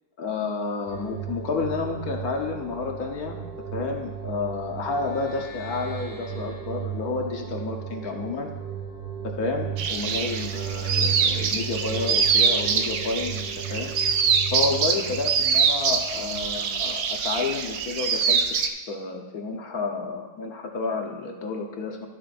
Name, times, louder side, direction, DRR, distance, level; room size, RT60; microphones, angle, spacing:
voice 1, 0.2-3.4 3.7-8.5 9.2-13.9 14.5-18.4 18.9-22.1, left 4 dB, 55° left, 2 dB, 1.4 m, -30 dB
sound 1, 0.9-16.3, right 9 dB, 45° right, 3.4 m, -35 dB
sound 2, 9.8-18.7, right 6 dB, 65° right, 0.9 m, -24 dB
13.0 x 7.8 x 2.6 m, 1.1 s
omnidirectional pair, 2.0 m